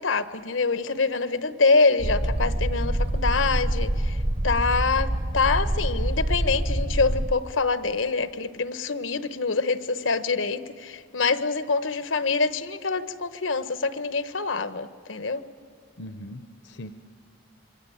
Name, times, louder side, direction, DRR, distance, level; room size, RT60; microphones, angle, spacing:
voice 1, 0.0-4.2 4.4-15.4, left 4 dB, 85° left, 12 dB, 1.1 m, -25 dB
sound 1, 2.0-7.3, right 1 dB, 35° right, 0.7 m, -26 dB
voice 2, 16.0-16.9, left 1 dB, 65° left, 10 dB, 0.8 m, -40 dB
27.0 x 23.0 x 8.8 m, 2.2 s
head